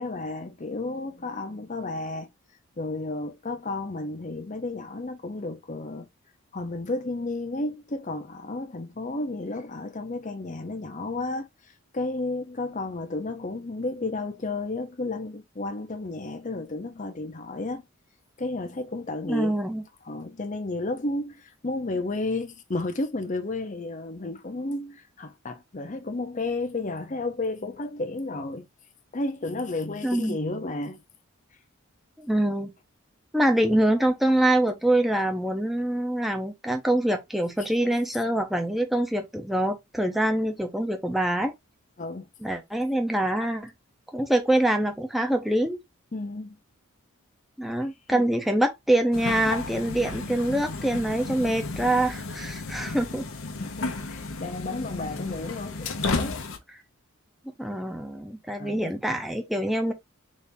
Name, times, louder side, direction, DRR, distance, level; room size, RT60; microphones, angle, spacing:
voice 1, 0.0-2.3 2.8-6.1 6.5-11.5 11.9-17.8 18.4-19.6 20.1-28.7 29.1-31.0 42.0-42.3 46.1-46.6 48.1-48.3 53.6-56.5 58.6-58.9, left 2 dB, 35° left, 0.7 m, -32 dB
voice 2, 19.2-19.8 30.0-30.4 32.2-32.7 33.3-41.5 42.4-43.7 44.1-45.8 47.6-53.3 57.6-59.9, right 1 dB, ahead, 0.7 m, -25 dB
sound 1, 49.1-56.6, left 3 dB, 75° left, 0.8 m, -33 dB
4.2 x 2.8 x 3.4 m
head